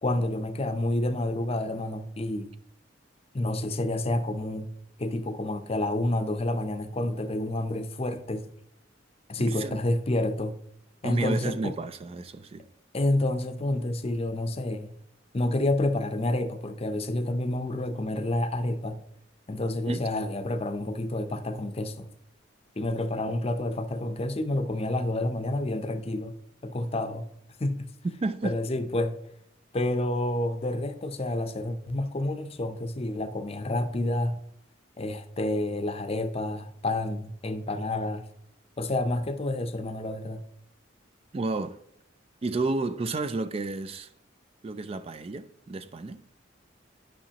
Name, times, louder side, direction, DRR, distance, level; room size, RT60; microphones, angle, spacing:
voice 1, 0.0-2.5 3.3-4.7 5.0-8.5 9.3-10.6 11.0-11.7 12.9-14.9 15.3-19.0 19.5-22.1 22.8-26.3 26.6-27.2 27.6-27.9 28.4-29.2 29.7-34.4 35.0-38.3 38.8-40.4, left 1 dB, 30° left, 0.6 m, -29 dB
voice 2, 11.0-12.7 19.9-20.0 28.2-28.6 41.3-41.8 42.4-44.1 44.6-46.3, right 3 dB, 30° right, 0.3 m, -31 dB
10.0 x 5.8 x 2.9 m
head